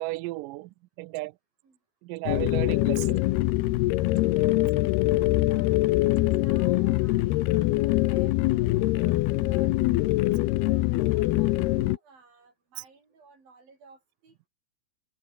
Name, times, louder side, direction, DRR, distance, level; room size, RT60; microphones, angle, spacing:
voice 1, 0.0-1.3 2.0-3.2, right 20 dB, 85° right, 1.9 m, -34 dB
sound 1, 2.3-12.0, left 18 dB, 85° left, 2.7 m, -23 dB
voice 2, 4.2-5.8 6.4-9.8 10.7-14.5, right 4 dB, 60° right, 9.0 m, -54 dB
omnidirectional pair, 4.6 m